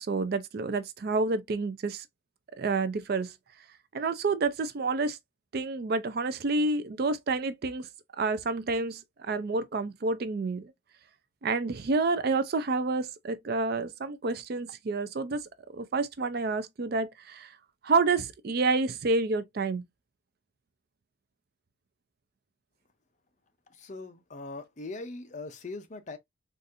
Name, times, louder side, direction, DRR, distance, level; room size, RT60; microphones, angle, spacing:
voice 1, 0.0-2.0 2.6-3.3 3.9-5.2 5.5-7.9 8.2-10.7 11.4-15.4 15.7-17.5 17.8-19.8, right 3 dB, 50° right, 0.4 m, -29 dB
voice 2, 23.7-26.2, left 3 dB, 35° left, 0.5 m, -41 dB
4.0 x 2.5 x 2.5 m
head